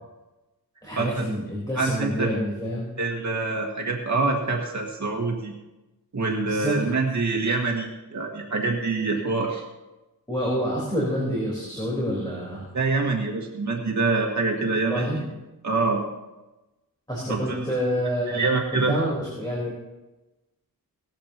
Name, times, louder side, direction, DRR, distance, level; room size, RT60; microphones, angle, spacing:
voice 1, 0.8-2.9 6.4-6.8 10.3-12.7 14.9-15.2 17.1-18.5 18.7-19.7, equal, 10° left, -5 dB, 4.1 m, -27 dB
voice 2, 1.8-2.3 3.0-5.5 6.1-9.6 12.7-15.2 15.6-16.0 17.3-17.6 18.3-19.0, right 3 dB, 50° right, 0 dB, 1.8 m, -25 dB
18.5 x 14.0 x 3.0 m, 1.0 s
wide cardioid pair, 165°, 36 cm